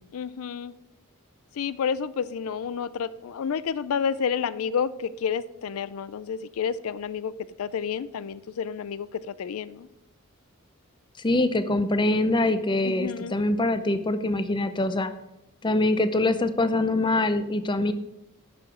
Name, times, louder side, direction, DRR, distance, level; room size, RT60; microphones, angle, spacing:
voice 1, 0.1-0.7 1.6-7.3 7.6-9.9 12.8-13.4, left 7 dB, 75° left, 16 dB, 0.4 m, -30 dB
voice 2, 11.2-15.1 15.6-17.9, left 2 dB, 20° left, 10 dB, 0.5 m, -24 dB
10.5 x 5.0 x 6.1 m, 0.89 s
head